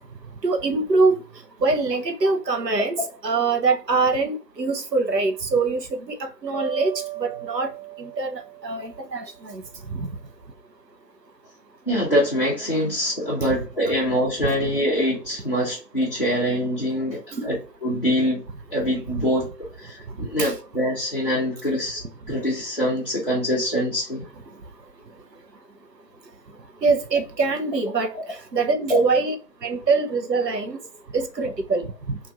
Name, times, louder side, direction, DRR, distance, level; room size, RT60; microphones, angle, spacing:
voice 1, 0.4-1.2 1.6-6.9 7.2-7.7 8.0-10.1 13.4-13.6 17.3-17.5 19.2-19.3 20.4-20.5 26.8-29.4 29.6-30.8 31.1-32.2, right 3 dB, 85° right, 0.8 m, -24 dB
sound 1, 6.5-9.6, right 15 dB, 55° right, 0.9 m, -36 dB
voice 2, 11.9-18.4 18.7-19.5 19.8-22.0 22.3-24.2 28.9-29.0, equal, 35° left, 0.7 m, -24 dB
3.0 x 2.5 x 2.5 m
figure-of-eight pair, 165°, 48 cm